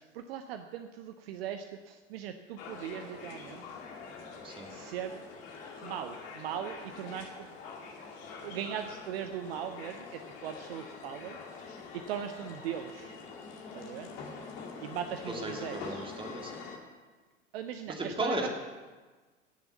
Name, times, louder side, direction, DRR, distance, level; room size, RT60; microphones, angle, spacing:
voice 1, 0.0-3.8 4.7-5.2 5.8-7.5 7.9-8.1 8.4-11.4 11.9-13.2 13.7-14.1 14.8-16.1 17.5-18.5, right 9 dB, 55° right, 8 dB, 0.8 m, -39 dB
sound 1, 2.6-16.8, left 4 dB, 55° left, 2.4 m, -45 dB
voice 2, 15.3-16.6 17.9-18.5, right 1 dB, 15° right, 1 dB, 2.3 m, -35 dB
17.0 x 7.0 x 7.1 m, 1.4 s
figure-of-eight pair, 80°, 36 cm